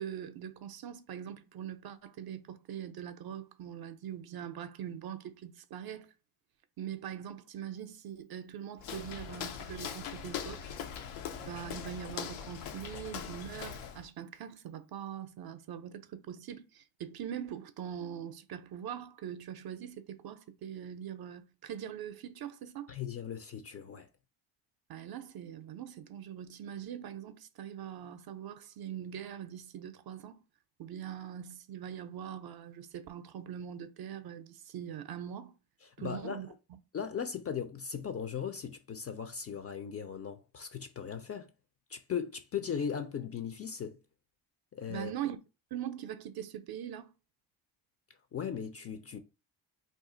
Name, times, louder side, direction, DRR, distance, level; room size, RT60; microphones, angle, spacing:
voice 1, 0.0-6.1 6.8-10.7 11.4-22.9 24.9-30.4 30.8-35.5 36.0-36.5 44.9-45.4 45.7-47.1, right 9 dB, 50° right, 0.5 m, -42 dB
Walk footsteps, 8.8-14.1, left 8 dB, 85° left, 0.6 m, -41 dB
voice 2, 22.9-24.1 36.0-36.4 36.9-41.5 41.9-44.0 44.7-45.1 48.3-49.2, left 7 dB, 30° left, 0.4 m, -38 dB
2.5 x 2.4 x 3.8 m
supercardioid pair, 70°, 50 cm